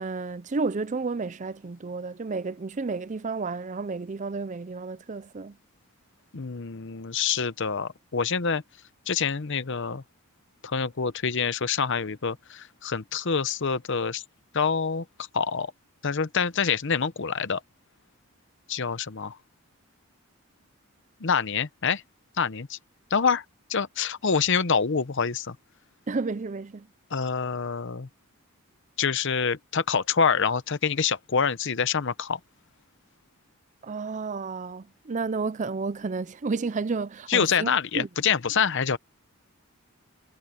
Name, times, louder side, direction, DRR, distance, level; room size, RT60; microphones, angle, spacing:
voice 1, 0.0-5.6 26.1-26.9 33.8-38.1, right 4 dB, 35° right, 0.4 m, -31 dB
voice 2, 6.3-8.6 9.1-10.0 10.6-14.2 14.5-15.0 15.3-15.7 16.0-17.6 18.7-19.4 21.2-22.0 22.4-22.8 23.1-23.4 23.7-25.6 27.1-28.1 29.0-32.4 37.3-39.0, left 6 dB, 55° left, 0.8 m, -26 dB
head